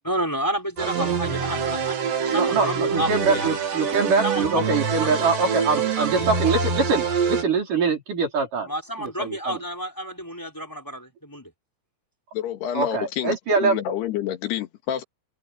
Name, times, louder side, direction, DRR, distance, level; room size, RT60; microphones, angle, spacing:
voice 1, 0.0-3.5 4.2-4.6 5.1-6.3 8.7-11.5, right 1 dB, 5° left, 3.9 m, -30 dB
sound 1, 0.8-7.4, right 6 dB, 85° right, 5.7 m, -25 dB
voice 2, 2.3-8.7 9.0-9.6 12.7-13.8, right 4 dB, 50° right, 6.3 m, -24 dB
voice 3, 12.3-15.0, left 10 dB, 80° left, 3.8 m, -28 dB
omnidirectional pair, 4.7 m